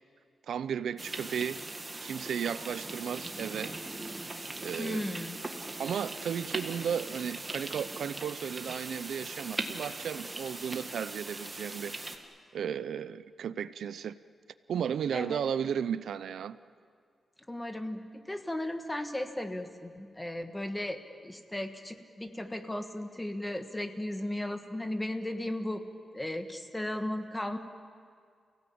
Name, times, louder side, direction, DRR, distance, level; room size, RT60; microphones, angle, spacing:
voice 1, 0.5-1.6 2.0-3.7 4.6-5.2 5.8-12.0 12.5-14.2 14.7-16.6, right 8 dB, 90° right, 0.6 m, -34 dB
sound 1, 1.0-12.2, right 2 dB, 20° right, 1.7 m, -40 dB
voice 2, 4.8-5.4 15.1-15.4 17.5-25.8 26.1-27.6, left 1 dB, 10° left, 1.4 m, -36 dB
29.0 x 17.0 x 8.7 m
wide cardioid pair, 150°, 0 cm